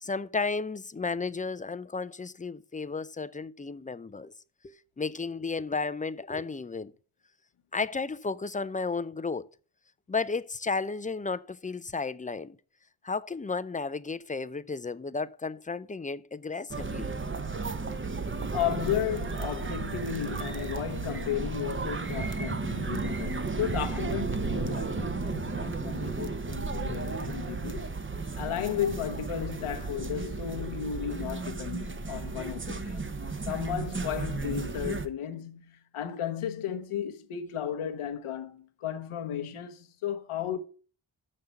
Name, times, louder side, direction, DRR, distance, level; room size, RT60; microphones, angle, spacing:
voice 1, 0.0-4.3 4.6-6.9 7.7-9.4 10.1-12.6 13.0-17.2, left 4 dB, 15° left, 0.5 m, -33 dB
sound 1, 16.7-35.1, right 3 dB, 25° right, 0.9 m, -34 dB
voice 2, 18.5-27.9 28.4-33.1 33.5-40.6, left 9 dB, 80° left, 1.1 m, -34 dB
6.5 x 5.8 x 6.9 m
cardioid pair, 50°, 50 cm